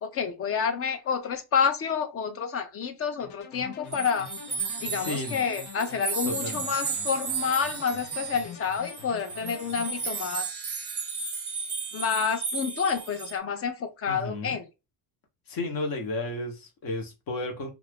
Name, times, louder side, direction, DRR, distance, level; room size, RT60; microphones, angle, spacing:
voice 1, 0.0-4.3 4.8-10.6 11.9-14.7, left 6 dB, 35° left, 0.5 m, -29 dB
sound 1, 3.2-10.1, left 7 dB, 85° left, 0.8 m, -45 dB
sound 2, 3.9-13.4, right 5 dB, 25° right, 0.6 m, -34 dB
voice 2, 4.9-5.4 6.3-6.6 14.1-14.6 15.5-17.7, left 2 dB, 55° left, 1.0 m, -33 dB
2.5 x 2.4 x 3.3 m
cardioid pair, 145°, 42 cm